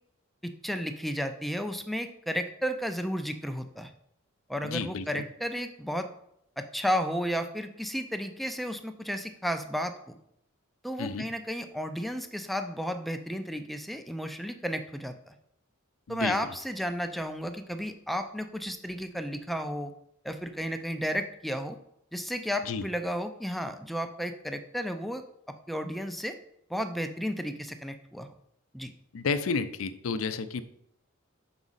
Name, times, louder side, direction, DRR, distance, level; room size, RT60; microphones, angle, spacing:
voice 1, 0.4-3.9 4.5-6.1 6.6-10.2 10.8-15.3 16.1-19.9 20.2-21.8 22.1-25.2 25.7-26.4 26.7-28.3 28.7-28.9, equal, ahead, 7 dB, 0.4 m, -33 dB
voice 2, 4.6-5.2 11.0-11.3 16.1-16.4 22.6-22.9 29.1-30.6, left 4 dB, 75° left, 12 dB, 0.5 m, -31 dB
6.0 x 4.8 x 4.0 m, 0.74 s
head